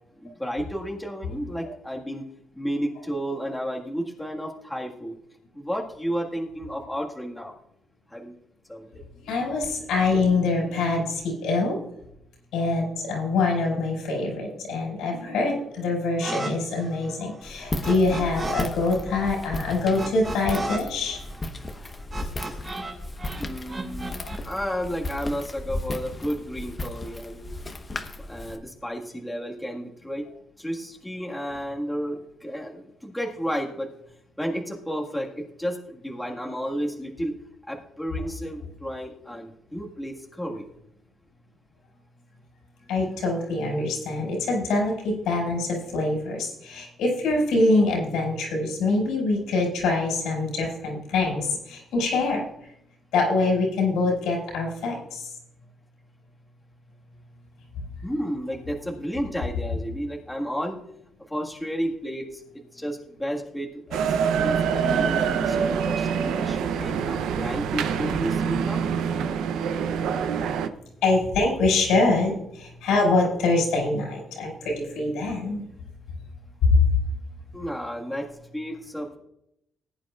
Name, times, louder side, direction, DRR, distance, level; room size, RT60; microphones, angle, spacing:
voice 1, 0.2-2.2 2.5-5.1 5.5-7.5 8.1-8.3 8.7-8.9 23.4-24.1 24.4-27.5 28.3-30.3 30.6-33.9 34.4-37.3 37.7-40.7 58.0-60.8 61.3-62.4 62.7-64.0 64.3-68.8 77.5-79.2, equal, 5° left, -1 dB, 1.8 m, -32 dB
voice 2, 9.2-11.8 12.5-21.2 24.2-24.3 42.9-52.4 53.1-55.3 71.0-75.6 76.6-76.8, left 3 dB, 90° left, -1 dB, 5.2 m, -24 dB
sound 1, 16.2-16.5 16.8-18.7 18.9-22.9 23.2-24.4, right 2 dB, 30° right, 4.2 m, -34 dB
Walk footsteps, 17.4-28.6, left 2 dB, 30° left, 1.1 m, -35 dB
sound 2, 63.9-70.7, right 7 dB, 85° right, 0.7 m, -25 dB
19.0 x 9.4 x 2.4 m, 0.79 s
cardioid pair, 90°, 0 cm